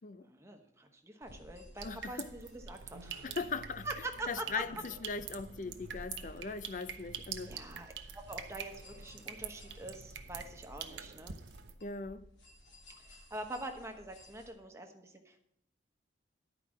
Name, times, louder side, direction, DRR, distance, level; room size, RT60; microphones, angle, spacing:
voice 1, 0.2-3.3 3.8-4.6 7.5-11.4 13.0-15.4, right 2 dB, 15° right, 1.0 m, -44 dB
sound 1, 1.2-14.5, equal, 85° left, 2.1 m, -58 dB
voice 2, 1.8-2.3 3.2-3.9 4.3-7.5 11.8-12.2, left 4 dB, 45° left, 0.4 m, -39 dB
sound 2, 1.8-11.7, right 7 dB, 75° right, 0.8 m, -46 dB
11.0 x 5.0 x 7.2 m
head